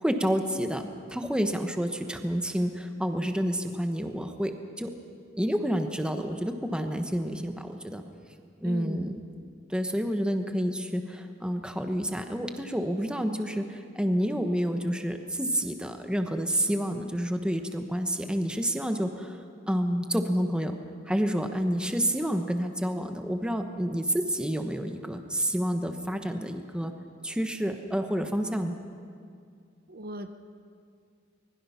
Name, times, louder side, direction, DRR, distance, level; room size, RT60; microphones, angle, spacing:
voice 1, 0.0-4.9 5.4-8.0 8.6-9.2 9.7-19.4 19.7-20.8 21.1-26.9 27.2-28.8, equal, 5° right, 6 dB, 1.1 m, -29 dB
voice 2, 8.6-9.1 29.9-30.3, right 1 dB, 50° right, 8 dB, 1.0 m, -37 dB
24.5 x 20.5 x 5.8 m, 2.2 s
head